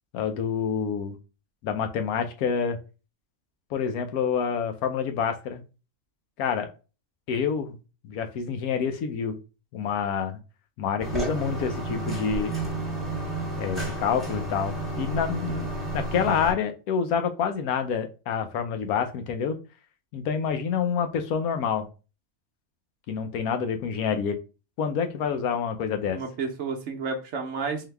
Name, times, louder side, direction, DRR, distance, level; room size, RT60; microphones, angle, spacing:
voice 1, 0.1-1.2 1.6-2.8 3.7-5.6 6.4-6.7 7.3-7.8 8.0-9.4 9.7-10.4 10.8-12.6 13.6-15.7 15.9-19.6 20.1-21.9 23.1-24.4 24.8-26.2, left 6 dB, 85° left, 7 dB, 1.1 m, -27 dB
sound 1, 11.0-16.5, right 2 dB, ahead, 1.2 m, -31 dB
voice 2, 26.1-27.9, right 4 dB, 60° right, 3 dB, 0.9 m, -31 dB
3.8 x 2.7 x 3.3 m, 0.32 s
omnidirectional pair, 1.5 m